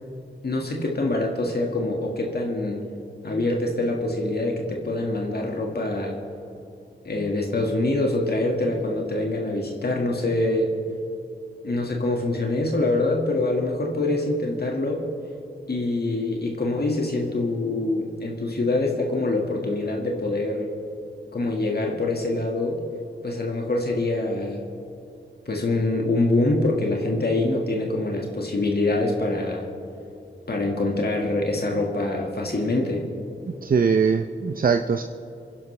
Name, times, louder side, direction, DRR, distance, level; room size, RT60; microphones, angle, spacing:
voice 1, 0.4-2.8 3.2-6.2 7.1-10.7 11.6-15.0 15.7-20.7 21.3-22.8 23.2-24.6 25.5-29.7 30.5-33.0, left 2 dB, 50° left, 0 dB, 1.8 m, -25 dB
voice 2, 33.5-35.0, right 5 dB, 45° right, 7 dB, 0.6 m, -21 dB
26.5 x 11.0 x 3.3 m, 2.7 s
cardioid pair, 50°, 20 cm